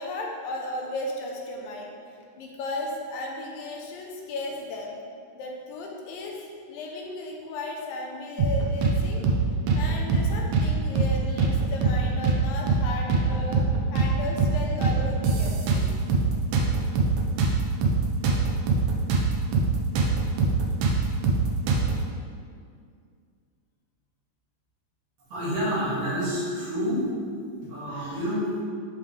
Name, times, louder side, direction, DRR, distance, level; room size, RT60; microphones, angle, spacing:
voice 1, 0.0-1.9 2.4-5.0 5.4-9.3 9.7-15.9, left 2 dB, 80° left, 0 dB, 2.3 m, -35 dB
sound 1, 8.4-9.0 9.2-9.4 9.7-10.7 11.0-11.1 11.4-12.4 12.7-12.8 13.1-14.1 14.4-14.5 14.8-16.3 16.5-19.3 19.5-19.7 20.0-22.0, right 3 dB, 85° right, 1.6 m, -23 dB
voice 2, 25.3-27.0 27.6-28.6, equal, 70° right, -9 dB, 3.4 m, -28 dB
10.5 x 3.6 x 3.2 m, 2.2 s
omnidirectional pair, 4.2 m